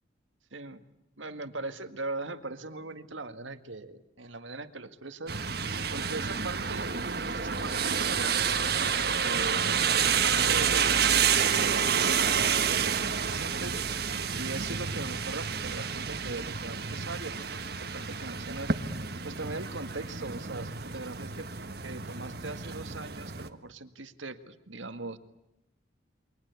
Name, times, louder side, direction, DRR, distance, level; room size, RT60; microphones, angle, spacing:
voice 1, 0.5-0.8 1.2-5.4 5.9-14.1 14.4-18.7 19.2-21.5 21.8-25.2, right 3 dB, 90° right, 9 dB, 1.9 m, -40 dB
sound 1, 5.3-23.5, right 7 dB, 55° right, 1.5 m, -29 dB
29.0 x 24.0 x 8.2 m, 0.84 s
head